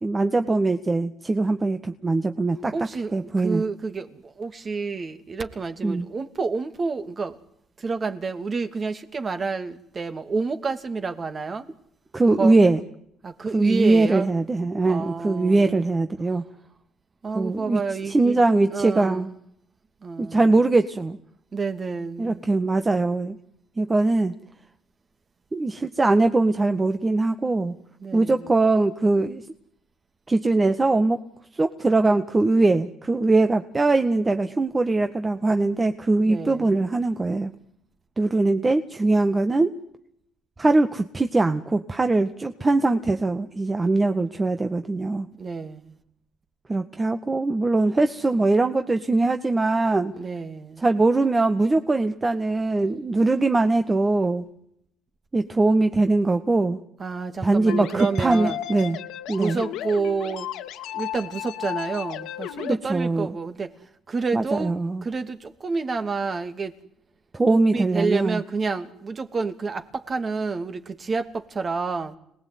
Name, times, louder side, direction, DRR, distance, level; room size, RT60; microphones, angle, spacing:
voice 1, 0.0-2.7 3.1-3.6 5.8-6.1 12.1-12.8 13.5-16.4 17.3-17.8 18.1-19.3 20.2-21.2 22.2-23.4 23.8-24.3 25.5-27.7 28.1-29.4 30.3-31.2 31.6-37.5 38.2-39.7 40.6-45.3 46.7-50.1 50.8-54.4 55.3-56.8 57.4-59.0 59.3-59.6 62.7-63.3 64.3-65.0 67.3-68.4, right 2 dB, 25° right, 1.7 m, -21 dB
voice 2, 2.7-7.4 7.8-11.7 12.4-12.5 13.2-14.3 14.8-15.9 17.2-18.4 18.7-19.3 20.0-20.6 21.5-22.5 28.0-28.5 36.2-36.8 45.4-45.9 50.1-50.9 57.0-58.6 59.4-60.5 60.9-63.7 64.1-64.7 65.0-66.7 67.5-72.2, right 4 dB, 40° right, 2.8 m, -29 dB
sound 1, 57.7-62.7, left 12 dB, 85° left, 2.4 m, -34 dB
27.5 x 19.5 x 9.5 m
cardioid pair, 85°, 0 cm